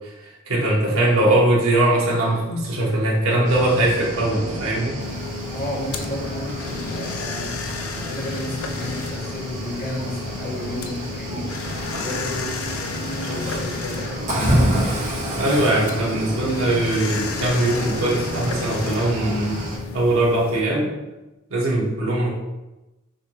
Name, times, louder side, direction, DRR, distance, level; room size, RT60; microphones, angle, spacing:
voice 1, 0.5-5.0 15.4-19.6 19.9-20.9 21.5-22.3, right 1 dB, 80° right, -4 dB, 1.4 m, -21 dB
Cricket / Waves surf, 3.4-19.8, right 1 dB, 40° right, 1.4 m, -29 dB
sound 1, 5.0-20.6, left 4 dB, 75° left, 0.4 m, -33 dB
voice 2, 5.5-14.3, left 1 dB, 45° left, -5 dB, 1.4 m, -33 dB
5.5 x 2.8 x 3.1 m, 1.0 s
head